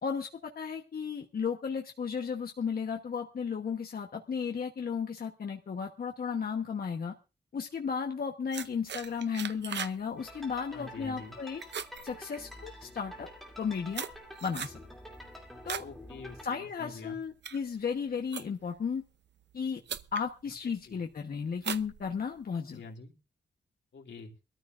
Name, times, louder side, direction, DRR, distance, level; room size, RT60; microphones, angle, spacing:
voice 1, 0.0-7.1 7.5-11.6 12.0-13.3 13.6-14.1 14.4-14.8 15.6-15.8 16.4-19.0 19.5-19.8 20.1-22.8, left 6 dB, 55° left, 2 dB, 1.1 m, -34 dB
sound 1, 8.5-10.0 10.3-10.6 11.0-11.3 11.6-12.8 13.4-15.9 16.3-16.7 17.2-18.8 19.5-19.6 19.9-20.3 20.8-21.1 21.6-22.6, right 8 dB, 80° right, 0.7 m, -40 dB
sound 2, 10.2-16.5, left 1 dB, ahead, 2.8 m, -48 dB
voice 2, 10.7-11.3 15.8-17.2 20.9-21.0 22.7-23.1 23.9-24.3, left 4 dB, 85° left, 2 dB, 2.5 m, -46 dB
23.0 x 13.5 x 2.5 m, 0.31 s
wide cardioid pair, 165°, 18 cm